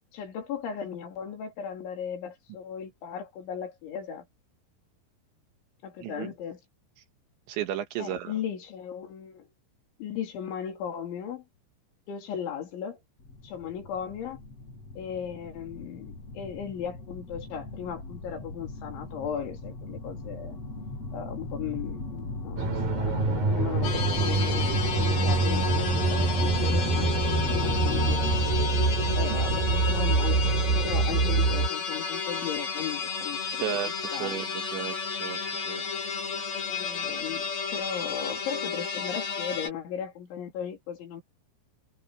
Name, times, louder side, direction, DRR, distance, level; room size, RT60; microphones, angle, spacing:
voice 1, 0.1-4.3 5.8-6.6 8.0-9.5 10.0-11.4 12.1-13.0 13.4-14.4 15.0-20.6 21.1-28.3 29.2-30.4 30.8-33.8 34.1-34.4 36.7-37.5 37.7-41.2, left 8 dB, 85° left, 5.9 m, -37 dB
voice 2, 6.0-6.3 7.5-8.3 29.3-29.4 33.5-35.8, right 10 dB, 80° right, 4.0 m, -34 dB
sound 1, 13.2-30.2, left 2 dB, 35° left, 8.4 m, -37 dB
sound 2, 22.6-31.7, right 4 dB, 55° right, 6.7 m, -25 dB
sound 3, 23.8-39.7, left 6 dB, 55° left, 6.1 m, -32 dB
omnidirectional pair, 5.2 m